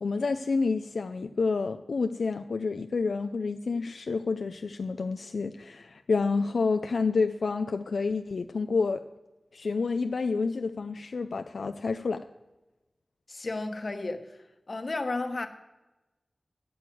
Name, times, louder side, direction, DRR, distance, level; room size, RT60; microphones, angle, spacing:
voice 1, 0.0-9.0 9.5-12.2, left 4 dB, 85° left, 0.4 m, -29 dB
voice 2, 13.3-14.4 14.7-15.5, left 2 dB, 55° left, 1.2 m, -33 dB
9.3 x 8.6 x 7.7 m
wide cardioid pair, 50°, 0 cm